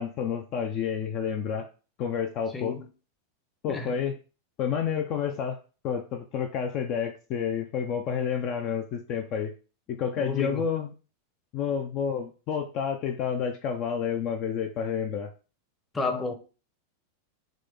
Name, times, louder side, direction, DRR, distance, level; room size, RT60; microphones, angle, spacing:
voice 1, 0.0-1.7 2.0-2.8 3.6-4.1 4.6-5.6 5.8-9.5 9.9-10.9 11.5-15.3, left 7 dB, 40° left, 0.4 m, -29 dB
voice 2, 2.5-2.9 3.7-4.0 10.1-10.6 15.9-16.3, left 3 dB, 10° left, 0.8 m, -31 dB
3.7 x 2.9 x 3.5 m
figure-of-eight pair, 90°, 0 cm